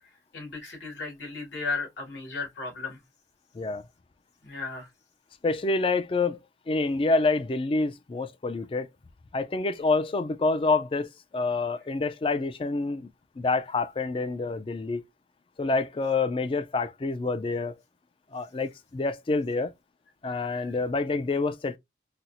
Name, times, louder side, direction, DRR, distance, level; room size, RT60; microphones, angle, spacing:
voice 1, 0.3-3.0 4.4-4.9 20.2-20.8, left 4 dB, 75° left, 2.1 m, -35 dB
voice 2, 5.4-6.4 6.7-8.9 9.3-13.1 13.4-15.0 15.6-17.7 18.3-19.7 20.2-21.8, left 3 dB, 30° left, 0.3 m, -27 dB
4.2 x 2.0 x 2.5 m
head